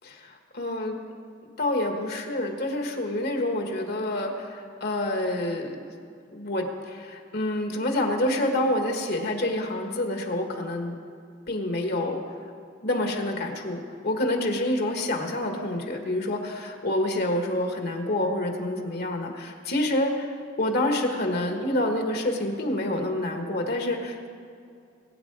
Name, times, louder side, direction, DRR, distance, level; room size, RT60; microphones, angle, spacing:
voice 1, 0.1-1.0 1.6-5.8 6.3-10.9 11.5-12.2 12.8-20.3 20.6-24.3, left 1 dB, 55° left, 3 dB, 1.5 m, -27 dB
21.0 x 9.1 x 4.7 m, 2.4 s
head